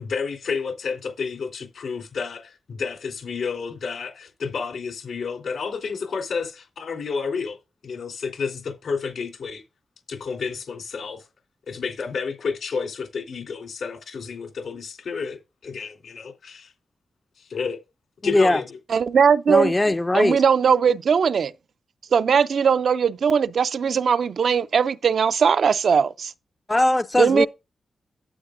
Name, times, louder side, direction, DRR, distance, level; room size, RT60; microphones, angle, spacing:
voice 1, 0.0-7.6 7.8-9.6 10.1-11.2 11.7-16.7 17.4-17.8 18.2-18.7, left 5 dB, 75° left, 3.4 m, -30 dB
voice 2, 18.2-18.6 19.5-20.4 26.7-27.5, left 1 dB, 15° left, 0.4 m, -20 dB
voice 3, 18.9-19.7 20.1-21.5 22.1-26.3 27.2-27.5, right 6 dB, 65° right, 0.4 m, -19 dB
11.5 x 8.6 x 2.6 m
wide cardioid pair, 115°, 0 cm